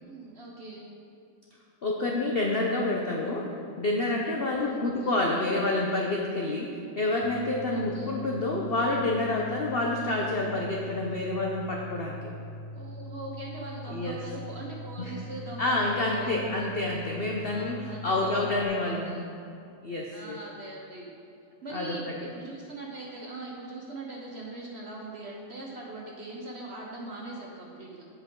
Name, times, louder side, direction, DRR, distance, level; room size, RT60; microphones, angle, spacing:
voice 1, 0.0-0.9 4.5-4.8 7.7-8.2 12.7-16.3 17.5-18.3 18.6-19.2 20.1-21.1 21.6-28.0, right 2 dB, 50° right, -2 dB, 0.9 m, -41 dB
voice 2, 1.8-3.5 3.8-12.2 13.9-14.2 15.0-15.1 15.6-19.2 19.8-20.4 21.7-22.0, left 2 dB, 65° left, -1 dB, 0.5 m, -28 dB
sound 1, 7.2-18.7, equal, 80° right, 1.2 m, -42 dB
8.1 x 7.9 x 3.8 m, 2.6 s
omnidirectional pair, 1.9 m